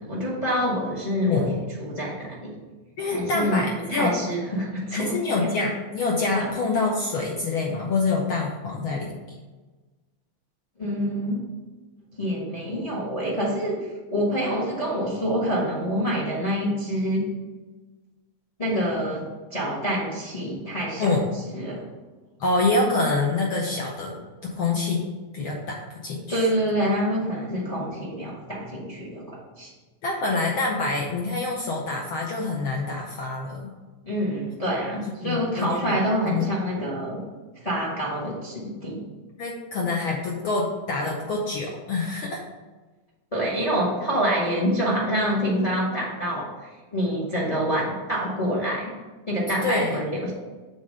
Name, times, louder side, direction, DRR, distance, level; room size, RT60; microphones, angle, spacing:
voice 1, 0.0-1.5 1.8-2.6 3.0-3.6 3.9-5.1 5.4-5.5 6.4-6.5 10.8-11.4 12.2-17.3 18.6-21.2 21.5-21.9 26.3-29.7 34.0-37.2 37.6-39.0 43.3-48.9 49.3-50.3, equal, 45° left, -4 dB, 0.4 m, -26 dB
voice 2, 1.2-1.6 3.0-4.2 4.9-9.4 21.0-21.3 22.4-24.2 24.5-25.0 25.3-26.5 30.0-33.7 35.2-35.9 36.2-36.5 39.4-42.4 49.6-50.0, left 3 dB, 70° left, -1 dB, 1.2 m, -26 dB
7.4 x 4.0 x 6.3 m, 1.3 s
omnidirectional pair, 3.3 m